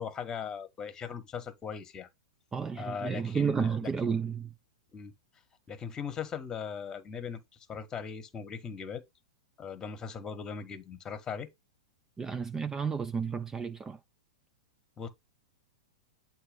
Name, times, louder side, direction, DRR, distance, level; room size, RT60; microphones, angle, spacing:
voice 1, 0.0-2.1 2.7-3.9 4.9-5.1 5.7-7.4 7.7-9.0 9.6-11.5 15.0-15.1, left 6 dB, 20° left, 1.2 m, -39 dB
voice 2, 2.5-4.5 12.2-14.0, right 6 dB, 15° right, 0.3 m, -31 dB
8.0 x 2.7 x 5.2 m
hypercardioid pair, 110°, 3 cm